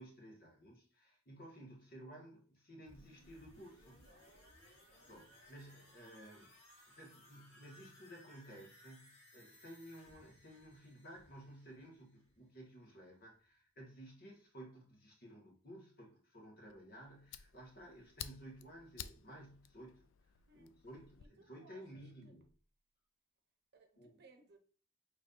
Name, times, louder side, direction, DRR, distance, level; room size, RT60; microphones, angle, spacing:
voice 1, 0.0-4.1 4.8-6.5 6.9-20.1 20.5-22.4 24.0-24.2, right 1 dB, 50° left, 1.5 m, -55 dB
sound 1, 2.8-12.6 12.9-13.0, left 1 dB, 75° left, 1.6 m, -63 dB
voice 2, 4.0-4.4 4.9-5.1 20.5-20.7 21.2-22.3 23.7-24.6, right 3 dB, 55° right, 0.8 m, -65 dB
Fire, 16.7-21.3, left 9 dB, 90° left, 0.3 m, -53 dB
5.2 x 3.1 x 2.5 m
head